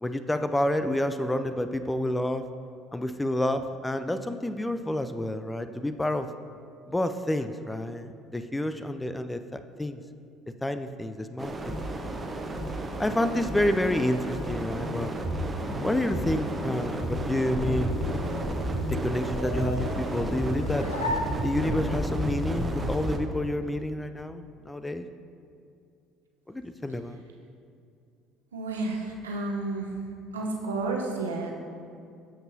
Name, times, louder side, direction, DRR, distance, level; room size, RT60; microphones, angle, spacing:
voice 1, 0.0-2.5 2.9-6.3 6.9-10.0 10.6-12.2 13.0-15.2 15.8-17.9 18.9-20.9 21.4-25.1 26.5-27.2, left 1 dB, 10° left, 10 dB, 0.4 m, -29 dB
sound 1, 11.4-23.2, right 1 dB, 20° right, 0.9 m, -32 dB
sound 2, 14.4-15.1 15.6-19.1 19.6-22.8, left 2 dB, 40° left, 1.7 m, -38 dB
sound 3, 17.6-22.1, left 1 dB, 85° left, 0.5 m, -37 dB
voice 2, 28.5-29.9 30.3-31.5, right 3 dB, 80° right, 0 dB, 0.9 m, -31 dB
14.5 x 5.4 x 2.7 m, 2.4 s
figure-of-eight pair, 55°, 0 cm